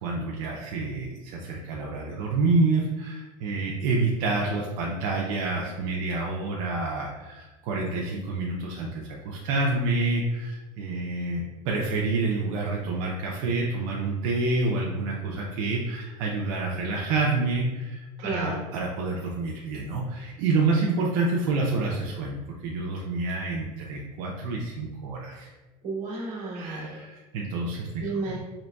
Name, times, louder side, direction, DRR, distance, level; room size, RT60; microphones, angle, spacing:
voice 1, 0.0-25.5 26.5-28.1, right 3 dB, 70° right, -2 dB, 0.5 m, -28 dB
voice 2, 18.2-18.6 25.8-27.0 28.0-28.4, right 3 dB, 45° right, -5 dB, 1.1 m, -32 dB
3.9 x 2.9 x 2.2 m, 1.2 s
cardioid pair, 165°, 18 cm